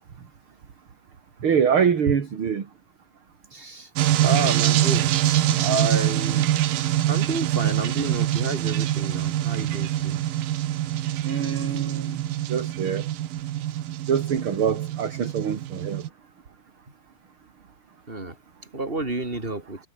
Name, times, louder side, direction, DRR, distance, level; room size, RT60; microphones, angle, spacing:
voice 1, 1.4-2.7 11.2-12.2 12.5-13.0 14.1-16.0, right 7 dB, 40° right, 2.7 m, -24 dB
voice 2, 3.5-3.9 4.2-6.5 6.8-10.2 12.0-12.1 18.1-18.4 18.7-19.8, right 2 dB, 15° right, 4.7 m, -30 dB
sound 1, 4.0-16.1, right 13 dB, 80° right, 3.0 m, -24 dB
omnidirectional pair, 4.1 m